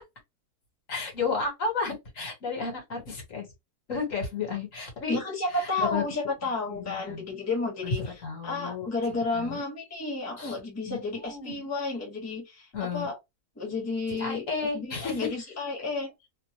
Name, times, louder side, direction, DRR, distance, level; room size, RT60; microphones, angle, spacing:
voice 1, 0.9-3.4 3.9-5.2 5.5-6.0 6.7-7.3 7.8-8.9 9.3-9.6 10.4-10.5 10.9-11.7 12.7-13.1 14.2-15.3, left 4 dB, 55° left, 1.5 m, -32 dB
voice 2, 5.1-13.2 13.6-14.5 14.7-16.1, left 3 dB, 10° left, 0.9 m, -32 dB
3.0 x 2.1 x 2.9 m
omnidirectional pair, 1.7 m